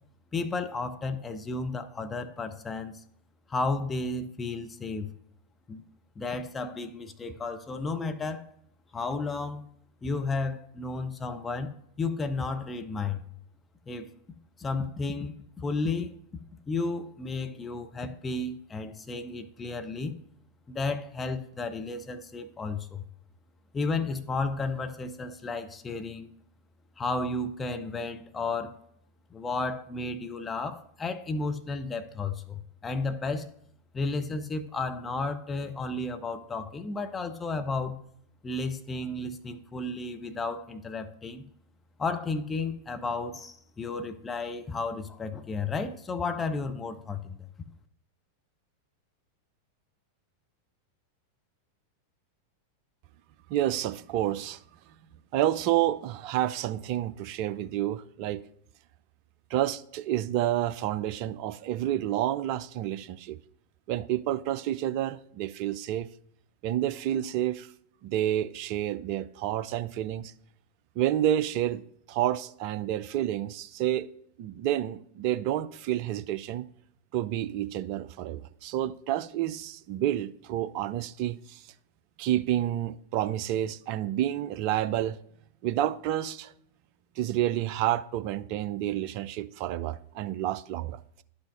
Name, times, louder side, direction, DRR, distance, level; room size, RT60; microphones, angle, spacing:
voice 1, 0.3-2.9 3.5-5.1 5.7-5.8 6.2-8.4 8.9-9.6 10.0-11.7 12.0-13.2 13.9-14.1 14.6-15.3 15.6-16.2 16.7-20.1 20.7-23.0 23.7-26.3 27.0-28.8 29.3-33.5 33.9-38.0 38.4-41.4 42.0-47.5, left 3 dB, 15° left, 0.6 m, -33 dB
voice 2, 53.5-54.6 55.3-58.4 59.5-63.4 63.9-66.1 66.6-67.7 68.0-70.3 71.0-71.8 72.1-74.1 74.4-76.7 77.1-81.6 82.2-85.2 85.6-86.5 87.2-91.0, right 12 dB, 45° right, 0.3 m, -29 dB
11.5 x 5.6 x 2.6 m
figure-of-eight pair, 90°, 0 cm